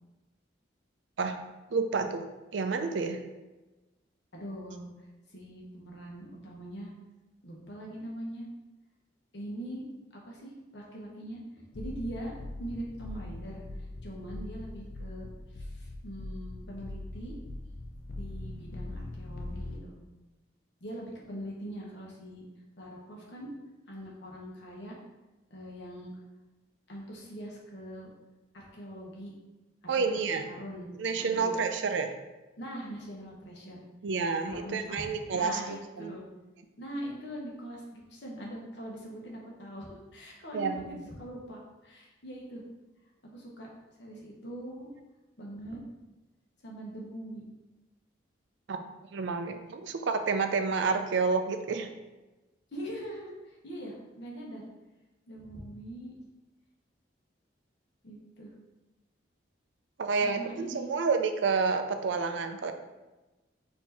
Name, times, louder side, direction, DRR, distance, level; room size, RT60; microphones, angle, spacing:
voice 1, 1.7-2.2 2.5-3.2 29.9-30.5 31.0-32.1 34.0-36.2 40.5-40.9 48.7-48.8 49.1-51.9 60.0-62.7, right 4 dB, 75° right, 7 dB, 0.4 m, -29 dB
voice 2, 4.3-4.9 5.3-6.9 7.4-8.5 9.3-9.8 10.1-11.4 11.7-13.6 14.0-17.3 18.1-19.9 20.8-22.4 22.8-23.5 23.9-25.0 25.5-26.1 26.9-28.1 28.5-29.3 30.0-30.2 30.4-31.6 32.6-33.9 34.4-36.3 36.8-42.6 43.2-43.7 44.0-44.9 45.4-45.8 46.6-47.4 52.7-54.6 55.3-56.1 58.0-58.5 60.2-60.9, right 1 dB, 65° left, -2 dB, 1.1 m, -42 dB
sound 1, 11.7-19.8, left 2 dB, 45° left, 0.4 m, -41 dB
4.4 x 2.8 x 4.1 m, 1.1 s
head